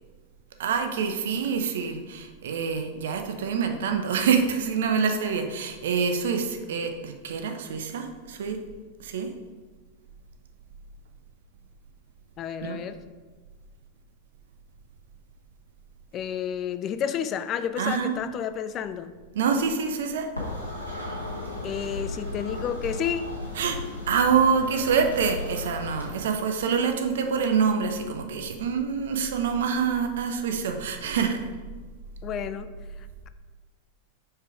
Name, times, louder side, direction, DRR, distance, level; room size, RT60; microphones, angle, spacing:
voice 1, 0.6-8.6 9.0-9.3 12.6-12.8 17.8-18.1 19.3-20.3 23.6-23.8 24.1-31.4, right 6 dB, 60° right, 5 dB, 0.6 m, -26 dB
voice 2, 12.4-13.0 16.1-19.1 21.6-23.3 32.2-32.7 33.0-33.3, left 8 dB, 30° left, 12 dB, 0.4 m, -31 dB
sound 1, 20.4-26.1, left 2 dB, 90° left, 1.5 m, -35 dB
4.7 x 4.6 x 4.9 m, 1.4 s
figure-of-eight pair, 90°, 0 cm